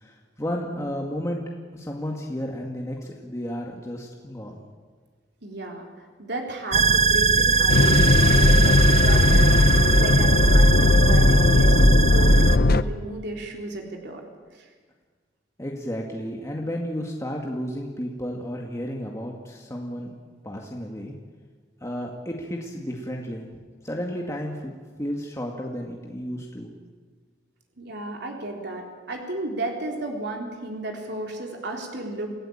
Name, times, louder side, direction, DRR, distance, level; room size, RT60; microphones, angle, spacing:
voice 1, 0.0-1.4 1.7-4.6 15.6-20.1 20.4-21.1 21.8-23.5 23.8-26.7, equal, 15° left, 0 dB, 2.2 m, -32 dB
voice 2, 5.4-5.9 6.2-14.2 14.5-14.7 27.8-32.3, right 2 dB, 65° right, 1 dB, 3.9 m, -34 dB
sound 1, 6.7-12.6, right 4 dB, 40° right, 0.7 m, -20 dB
sound 2, 7.7-12.8, left 2 dB, 55° left, 0.8 m, -18 dB
28.5 x 16.5 x 8.8 m, 1.5 s
head